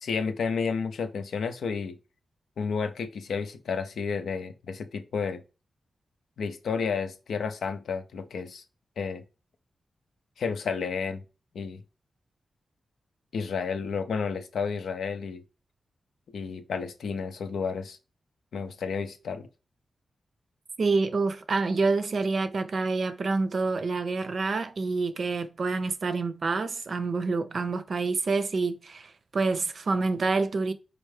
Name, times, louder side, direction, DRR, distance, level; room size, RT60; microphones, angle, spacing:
voice 1, 0.0-2.0 2.6-5.4 6.4-8.6 9.0-9.2 10.4-11.2 11.5-11.8 13.3-15.4 16.3-18.0 18.5-19.5, left 5 dB, 85° left, 0.5 m, -31 dB
voice 2, 20.8-30.7, right 3 dB, 60° right, 0.5 m, -27 dB
4.4 x 2.5 x 3.2 m
cardioid pair, 70°, 0 cm